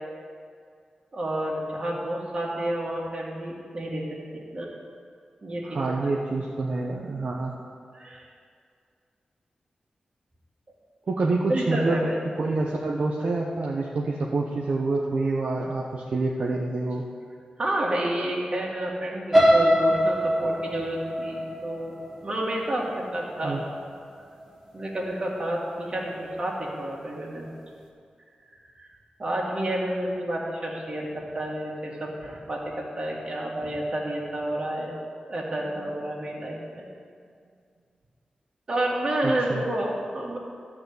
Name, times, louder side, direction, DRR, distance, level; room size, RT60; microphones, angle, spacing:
voice 1, 1.1-4.0 4.5-4.7 5.4-6.1 7.9-8.3 11.5-12.2 17.6-21.9 22.2-23.6 24.7-27.5 28.8-28.9 29.2-34.9 35.3-36.9 38.7-40.4, right 1 dB, 40° right, -3 dB, 2.1 m, -30 dB
voice 2, 5.6-7.6 11.1-12.1 12.4-17.0 23.4-23.6 39.2-39.6, right 3 dB, 60° right, -2 dB, 0.9 m, -27 dB
sound 1, 19.3-23.3 23.8-24.1 24.4-24.5, equal, 10° right, 1.6 m, -23 dB
12.5 x 4.3 x 8.2 m, 2.2 s
wide cardioid pair, 100°, 3 cm